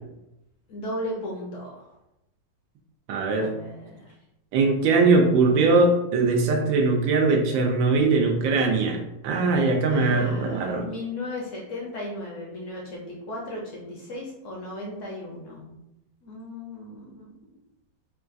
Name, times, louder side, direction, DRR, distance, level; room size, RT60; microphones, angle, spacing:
voice 1, 0.7-1.9 3.4-4.1 9.9-15.8 16.2-17.4, left 1 dB, 70° left, -2 dB, 0.7 m, -36 dB
voice 2, 3.1-3.5 4.5-10.8, right 3 dB, 85° right, 2 dB, 1.3 m, -21 dB
3.8 x 2.3 x 2.5 m, 0.88 s
omnidirectional pair, 2.0 m